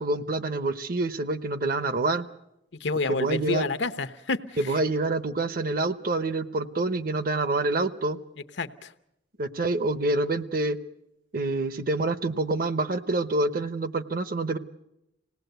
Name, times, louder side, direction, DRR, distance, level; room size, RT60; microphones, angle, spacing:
voice 1, 0.0-2.3 3.1-3.7 4.6-8.2 9.4-10.8 11.3-14.6, right 2 dB, 50° right, 13 dB, 0.9 m, -27 dB
voice 2, 2.8-4.8 8.6-8.9, left 3 dB, 75° left, 10 dB, 0.9 m, -29 dB
26.0 x 18.5 x 8.0 m, 0.89 s
head